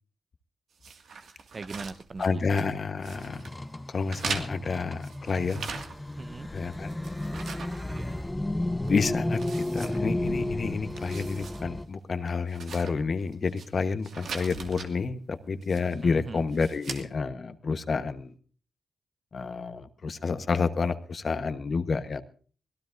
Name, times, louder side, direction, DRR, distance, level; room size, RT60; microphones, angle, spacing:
sound 1, 0.8-2.7 3.0-3.6 4.1-6.2 6.6-8.5 8.8-8.9 9.3-10.5 10.8-11.6 11.9-12.0 12.5-13.7 14.0-14.9 15.6-16.0 16.5-17.0, right 5 dB, 75° right, 2.1 m, -40 dB
voice 1, 1.5-2.4 6.2-6.5 7.9-8.2 16.0-16.4, right 3 dB, 40° right, 15 dB, 0.6 m, -40 dB
voice 2, 2.2-3.5 3.9-5.8 6.5-6.9 8.9-9.4 9.7-18.3 19.3-22.2, left 4 dB, 55° left, 10 dB, 1.2 m, -29 dB
sound 2, 3.1-11.8, left 1 dB, 15° left, 0.8 m, -33 dB
25.0 x 18.0 x 2.6 m, 0.42 s
cardioid pair, 60°, 0 cm